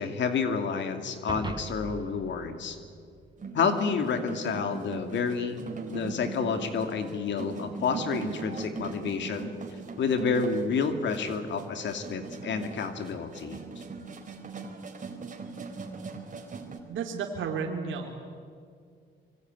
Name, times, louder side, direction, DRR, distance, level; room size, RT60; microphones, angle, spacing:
voice 1, 0.0-2.8 3.5-9.5 10.0-13.6, left 5 dB, 65° left, 7 dB, 2.6 m, -29 dB
sound 1, 1.3-3.8, right 4 dB, 25° right, 1.0 m, -40 dB
sound 2, 3.4-16.8, right 5 dB, 40° right, 3.8 m, -40 dB
voice 2, 16.9-18.1, right 6 dB, 80° right, 1 dB, 3.1 m, -32 dB
25.0 x 23.5 x 9.6 m, 2.2 s
cardioid pair, 90°, 20 cm